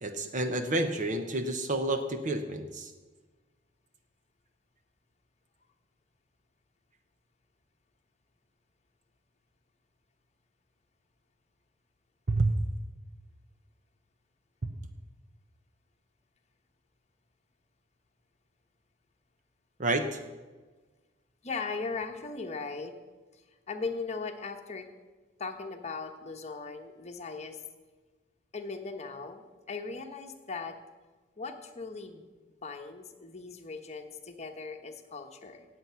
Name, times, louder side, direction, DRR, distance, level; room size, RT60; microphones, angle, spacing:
voice 1, 0.0-2.9 12.3-12.5 19.8-20.2, right 2 dB, 40° right, 7 dB, 0.9 m, -29 dB
voice 2, 21.4-22.9 23.7-24.8 25.4-27.6 28.5-30.7 31.4-32.3 32.6-35.6, left 4 dB, 35° left, 5 dB, 1.2 m, -38 dB
17.5 x 7.8 x 5.8 m, 1.3 s
head